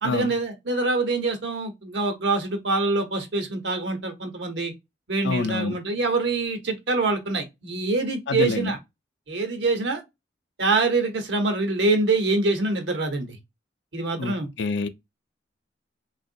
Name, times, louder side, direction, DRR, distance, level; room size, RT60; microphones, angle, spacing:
voice 1, 0.0-4.7 5.1-8.8 9.3-10.0 10.6-13.4 13.9-14.5, right 3 dB, 70° right, 1.0 m, -25 dB
voice 2, 5.2-5.8 8.3-8.8 14.2-14.9, left 4 dB, 70° left, 0.5 m, -27 dB
3.6 x 2.4 x 2.6 m
head